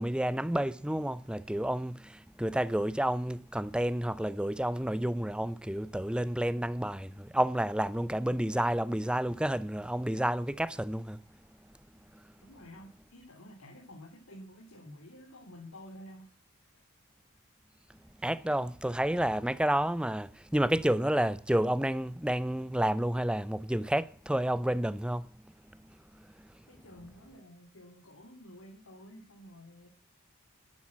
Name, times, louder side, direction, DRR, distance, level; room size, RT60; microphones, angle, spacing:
voice 1, 0.0-11.2 18.2-25.3, right 1 dB, 5° right, 0.6 m, -30 dB
voice 2, 12.4-16.3 26.7-29.9, equal, 80° left, 3.3 m, -51 dB
11.5 x 10.5 x 8.6 m
head